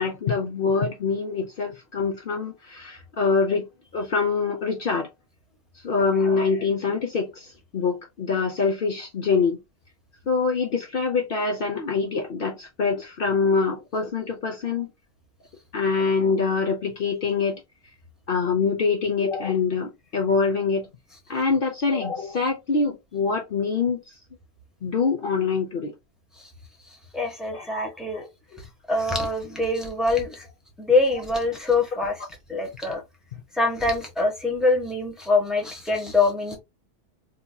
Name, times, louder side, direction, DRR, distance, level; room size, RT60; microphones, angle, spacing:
voice 1, 0.0-3.6 3.9-5.1 5.8-7.5 7.7-9.6 10.3-14.9 15.7-17.6 18.3-20.9 21.3-24.0 24.8-25.9 27.5-28.2, left 4 dB, 55° left, 0.9 m, -24 dB
voice 2, 27.1-28.2 28.9-30.4 30.8-32.1 32.5-33.0 33.5-36.6, left 3 dB, ahead, 1.1 m, -24 dB
4.1 x 2.8 x 2.2 m
omnidirectional pair, 1.2 m